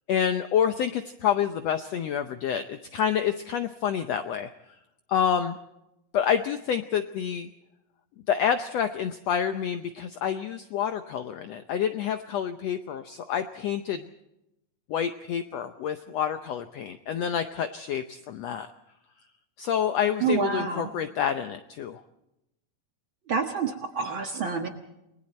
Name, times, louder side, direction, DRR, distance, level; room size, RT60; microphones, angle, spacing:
voice 1, 0.1-4.5 5.1-5.6 6.1-7.5 8.3-14.1 14.9-18.7 19.6-22.0, left 8 dB, 75° left, 9 dB, 1.5 m, -28 dB
voice 2, 20.2-20.9 23.3-24.7, right 5 dB, 50° right, 4 dB, 1.7 m, -28 dB
29.0 x 20.5 x 4.3 m, 0.90 s
omnidirectional pair, 3.9 m